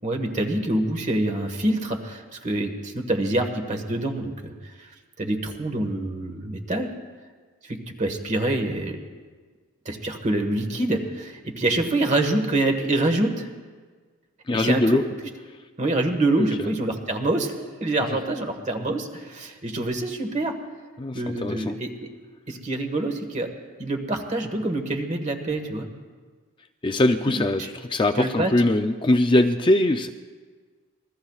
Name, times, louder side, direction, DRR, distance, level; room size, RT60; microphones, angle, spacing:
voice 1, 0.0-4.9 5.2-6.9 7.6-9.0 9.8-13.5 14.5-15.0 15.8-20.6 21.1-22.1 22.5-23.5 23.8-25.9 27.3-27.7 28.2-28.5, right 2 dB, 35° right, 5 dB, 1.5 m, -26 dB
voice 2, 14.5-15.1 16.4-16.5 21.0-21.8 26.8-30.1, left 1 dB, 20° left, 7 dB, 0.4 m, -21 dB
27.0 x 21.5 x 2.4 m, 1.5 s
head